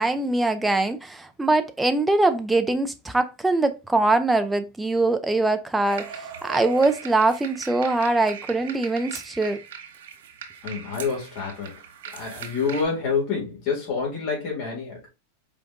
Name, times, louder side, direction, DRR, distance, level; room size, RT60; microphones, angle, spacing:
voice 1, 0.0-6.1 6.4-9.6, right 2 dB, 5° right, 0.5 m, -22 dB
sound 1, 5.8-12.8, right 8 dB, 75° right, 1.2 m, -39 dB
voice 2, 10.6-11.8 12.1-15.0, left 5 dB, 50° left, 2.2 m, -27 dB
4.8 x 2.6 x 3.5 m
hypercardioid pair, 125°, 0 cm